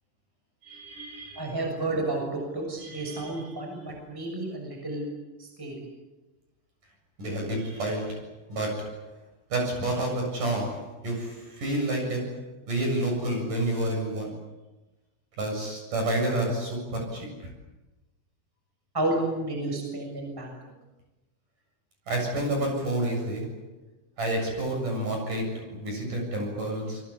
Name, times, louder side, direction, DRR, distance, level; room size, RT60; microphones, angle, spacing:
voice 1, 0.6-1.4 2.8-3.5 7.2-9.0 9.5-12.4 12.7-14.3 15.4-17.5 22.1-23.7 24.2-27.0, right 1 dB, 40° right, 2 dB, 8.8 m, -29 dB
voice 2, 1.3-5.1 5.4-5.9 18.9-20.5, right 2 dB, 5° right, 1 dB, 6.1 m, -31 dB
27.5 x 23.0 x 8.4 m, 1.1 s
omnidirectional pair, 5.8 m